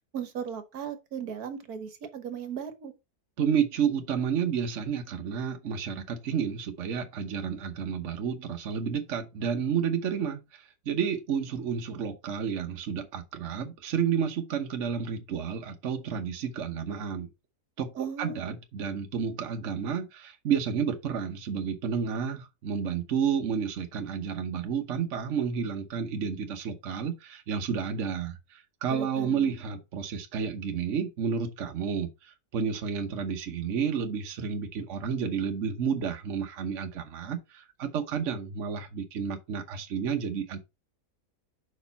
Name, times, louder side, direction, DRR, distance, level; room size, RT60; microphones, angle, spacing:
voice 1, 0.1-2.9 18.0-18.4 28.9-29.5, right 7 dB, 70° right, 1.5 m, -37 dB
voice 2, 3.4-17.3 17.8-40.6, right 7 dB, 55° right, 1.2 m, -31 dB
6.6 x 5.2 x 4.0 m
omnidirectional pair, 1.7 m